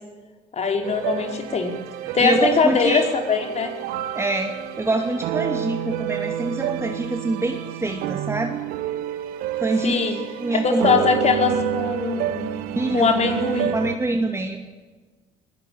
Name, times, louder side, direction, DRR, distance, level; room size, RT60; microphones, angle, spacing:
voice 1, 0.5-1.7 2.1-3.7 9.8-10.2 10.5-12.5 12.9-13.7, left 5 dB, 45° left, 4 dB, 4.7 m, -21 dB
sound 1, 0.8-14.0, right 12 dB, 70° right, 1.6 m, -29 dB
voice 2, 2.1-3.1 4.1-8.6 9.6-10.0 10.4-10.9 12.8-13.2 13.7-14.6, right 2 dB, 15° right, 4 dB, 2.4 m, -25 dB
20.5 x 17.5 x 8.8 m, 1.3 s
hypercardioid pair, 55°, 16 cm